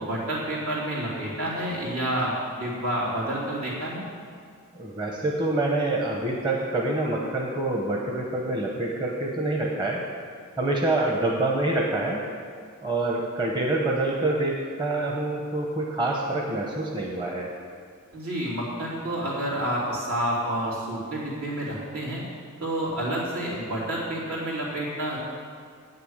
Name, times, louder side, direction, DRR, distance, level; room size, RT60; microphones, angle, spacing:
voice 1, 0.0-4.0 18.1-22.2 22.6-25.2, right 1 dB, 75° right, -6 dB, 3.3 m, -29 dB
voice 2, 4.8-10.0 10.6-12.2 12.8-17.5, right 2 dB, 20° right, -1 dB, 0.9 m, -26 dB
9.1 x 6.7 x 8.0 m, 2.1 s
head